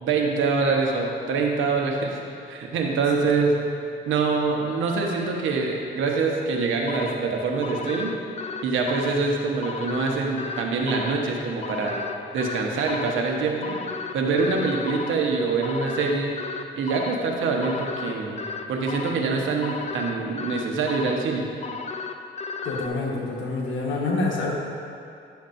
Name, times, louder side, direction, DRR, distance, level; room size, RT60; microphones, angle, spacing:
voice 1, 0.0-2.2 2.5-3.6 4.1-8.1 8.6-12.0 12.3-13.8 14.1-16.3 16.7-18.4 18.7-21.4, right 4 dB, 80° right, 0 dB, 1.1 m, -25 dB
sound 1, 6.9-22.9, left 4 dB, 35° left, 0.4 m, -35 dB
voice 2, 22.6-24.5, left 3 dB, 75° left, -2 dB, 1.4 m, -27 dB
10.5 x 7.2 x 2.6 m, 2.5 s
cardioid pair, 90°, 20 cm